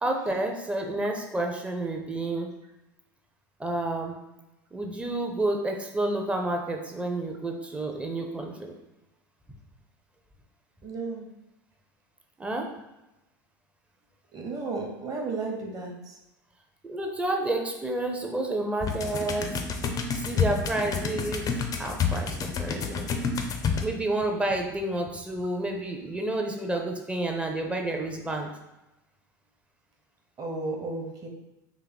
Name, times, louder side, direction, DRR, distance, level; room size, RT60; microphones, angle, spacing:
voice 1, 0.0-2.5 3.6-4.2 4.7-8.8 12.4-12.7 16.9-19.6 20.1-21.5 21.8-23.1 23.8-28.5, right 2 dB, 10° right, 2 dB, 0.6 m, -30 dB
voice 2, 10.8-11.3 14.3-15.9 30.4-31.3, right 3 dB, 30° right, 1 dB, 1.0 m, -33 dB
sound 1, 18.8-23.9, left 5 dB, 35° left, 0.5 m, -29 dB
3.4 x 2.6 x 4.0 m, 0.97 s
hypercardioid pair, 80°, 11 cm